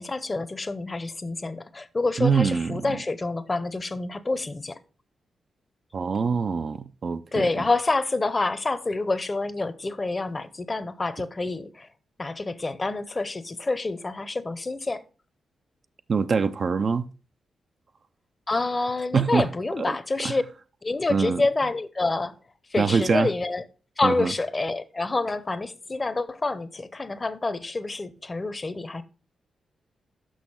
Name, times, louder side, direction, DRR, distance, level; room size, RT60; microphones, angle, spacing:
voice 1, 0.0-4.8 7.3-11.9 12.2-15.0 18.5-20.4 20.8-22.4 22.7-23.6 24.0-29.0, left 3 dB, 30° left, 0.8 m, -27 dB
voice 2, 2.2-3.0 5.9-7.5 16.1-17.1 19.1-19.5 19.9-20.0 20.2-20.4 21.1-21.4 22.8-23.3 24.0-24.3, right 5 dB, 55° right, 0.5 m, -24 dB
6.4 x 5.9 x 5.6 m
cardioid pair, 55°, 0 cm